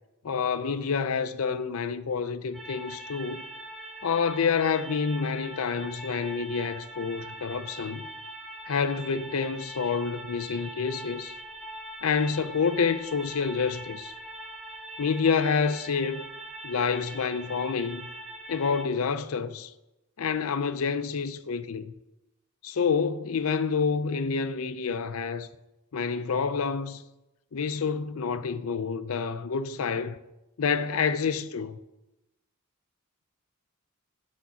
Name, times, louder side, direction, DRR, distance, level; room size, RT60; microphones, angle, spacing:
voice 1, 0.2-3.4 4.0-8.1 8.7-11.4 12.0-14.1 15.0-16.3 16.6-18.1 18.5-19.7 20.2-21.9 22.6-25.5 25.9-27.0 27.5-30.2 30.6-31.8, left 5 dB, 70° left, 0.5 m, -28 dB
sound 1, 2.5-18.8, right 1 dB, ahead, 0.7 m, -42 dB
8.4 x 5.1 x 5.7 m
head